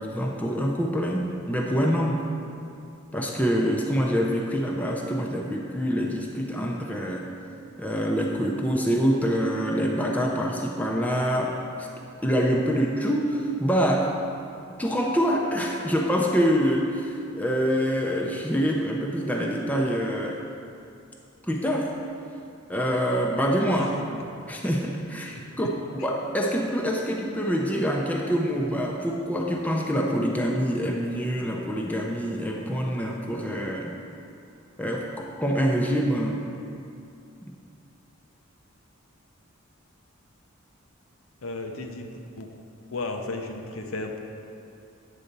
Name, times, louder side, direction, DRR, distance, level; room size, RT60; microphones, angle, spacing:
voice 1, 0.0-2.2 3.1-7.3 7.8-11.9 12.2-14.1 14.8-20.4 21.5-22.0 22.7-23.9 24.5-34.0 34.8-36.5, equal, 5° left, -1 dB, 0.5 m, -25 dB
voice 2, 23.8-24.3 25.3-25.7 41.4-42.5 42.9-44.2, left 2 dB, 75° left, 3 dB, 0.8 m, -35 dB
9.1 x 4.2 x 6.7 m, 2.6 s
head